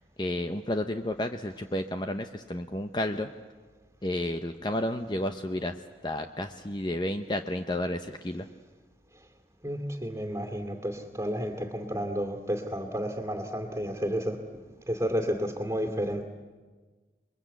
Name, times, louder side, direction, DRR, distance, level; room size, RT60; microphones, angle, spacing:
voice 1, 0.2-3.3 4.0-5.7 6.0-8.5, left 1 dB, 25° left, 7 dB, 0.7 m, -31 dB
voice 2, 9.6-14.4 14.9-16.2, equal, 15° right, 6 dB, 2.4 m, -31 dB
28.0 x 22.0 x 8.3 m, 1.4 s
head